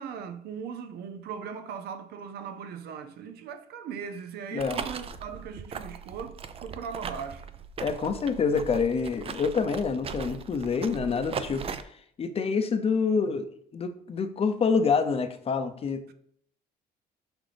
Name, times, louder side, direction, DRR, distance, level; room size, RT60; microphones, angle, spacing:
voice 1, 0.0-7.5, right 7 dB, 70° right, 0.7 m, -39 dB
sound 1, 4.6-11.8, right 6 dB, 35° right, 0.5 m, -38 dB
voice 2, 7.8-11.6 12.2-13.5 13.7-16.1, left 5 dB, 35° left, 0.7 m, -27 dB
6.2 x 5.0 x 3.4 m
cardioid pair, 110°, 17 cm